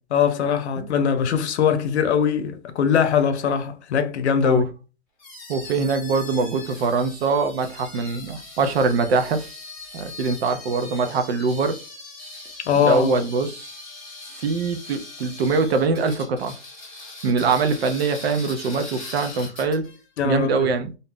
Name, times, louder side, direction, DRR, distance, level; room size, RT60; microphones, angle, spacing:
voice 1, 0.1-4.6 12.7-13.2 20.2-20.7, left 7 dB, 85° left, 0.7 m, -21 dB
sound 1, 5.2-20.0, left 3 dB, 5° left, 0.5 m, -40 dB
voice 2, 5.5-9.5 9.9-11.8 12.8-13.7 14.3-16.5 17.2-19.8 20.2-20.9, right 4 dB, 65° right, 0.7 m, -23 dB
2.6 x 2.1 x 3.5 m
hypercardioid pair, 165°, 33 cm